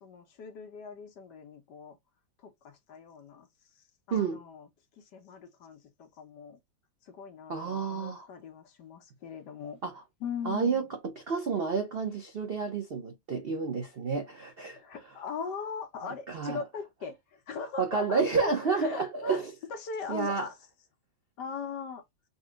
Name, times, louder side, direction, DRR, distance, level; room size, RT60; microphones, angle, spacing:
voice 1, 0.0-2.0 2.4-3.5 4.1-4.7 5.0-6.6 7.0-9.8 10.2-10.9 14.8-19.4 19.7-20.5 21.4-22.0, left 6 dB, 65° left, 1.5 m, -40 dB
voice 2, 4.1-4.4 7.5-8.3 9.8-10.0 10.4-14.8 16.3-16.6 17.8-19.5 20.1-20.5, right 5 dB, 65° right, 0.5 m, -30 dB
4.1 x 2.2 x 3.7 m
omnidirectional pair, 2.1 m